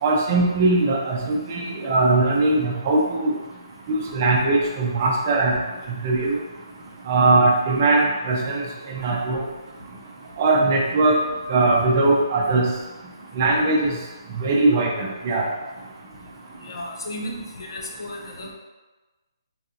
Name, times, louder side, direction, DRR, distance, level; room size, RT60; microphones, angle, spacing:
voice 1, 0.0-3.3 3.9-5.6 6.0-6.4 7.1-8.6 8.9-9.4 10.4-11.2 11.5-12.6 13.4-13.9 14.4-15.5, right 2 dB, 30° right, -1 dB, 0.5 m, -20 dB
voice 2, 16.6-18.5, left 1 dB, 60° left, 0 dB, 0.7 m, -34 dB
3.8 x 2.4 x 2.8 m, 1.2 s
hypercardioid pair, 165°, 3 cm